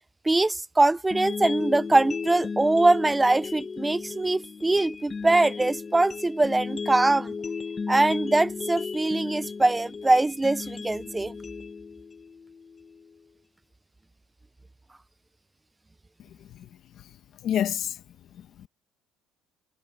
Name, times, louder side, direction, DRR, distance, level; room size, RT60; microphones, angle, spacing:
voice 1, 0.2-7.3 7.9-11.3, right 2 dB, 10° right, 0.4 m, -22 dB
sound 1, 1.1-13.1, left 5 dB, 25° left, 1.0 m, -35 dB
voice 2, 16.3-18.0 18.3-18.7, left 10 dB, 55° left, 1.2 m, -31 dB
cardioid pair, 130°, 0 cm